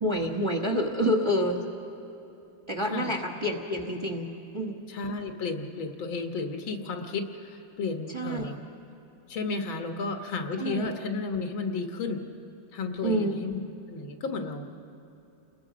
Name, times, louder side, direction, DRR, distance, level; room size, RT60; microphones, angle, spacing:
voice 1, 0.0-1.6 2.7-4.8 8.1-8.5 10.6-10.9 13.0-13.4, equal, 15° right, 2 dB, 1.3 m, -28 dB
voice 2, 4.9-8.6 9.3-12.3 12.7-13.6 13.9-14.9, left 4 dB, 80° left, 5 dB, 2.2 m, -33 dB
29.5 x 21.0 x 5.1 m, 2.9 s
omnidirectional pair, 2.2 m